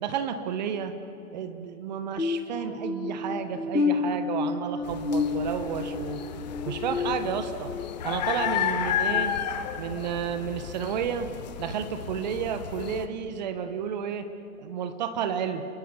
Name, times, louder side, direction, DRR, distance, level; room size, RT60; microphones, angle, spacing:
voice 1, 0.0-0.9 1.3-6.2 6.6-7.7 8.0-9.4 9.8-11.3 11.6-14.3 14.6-15.6, right 8 dB, 30° right, 9 dB, 1.4 m, -31 dB
sound 1, 2.2-7.8 8.3-8.5 9.1-9.2, left 4 dB, 85° left, 7.4 m, -30 dB
sound 2, 4.8-13.1, left 10 dB, 30° left, 1.2 m, -32 dB
29.5 x 23.0 x 8.3 m, 2.8 s
figure-of-eight pair, 140°, 43 cm